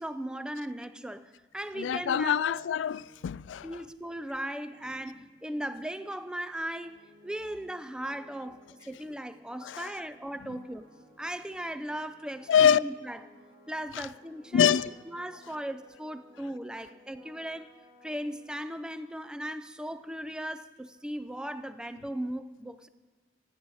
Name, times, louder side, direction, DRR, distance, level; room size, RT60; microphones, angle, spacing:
voice 1, 0.0-2.6 3.6-10.9 11.2-13.2 13.7-14.8 15.1-17.7 18.0-22.9, right 1 dB, 5° right, 0.4 m, -37 dB
tuba fanfarre, 1.5-19.1, left 1 dB, 75° right, 2.4 m, -60 dB
voice 2, 1.7-3.7 9.6-9.9 12.5-12.8 13.9-14.1 14.5-14.9, left 8 dB, 90° left, 0.3 m, -25 dB
14.0 x 9.7 x 6.3 m
head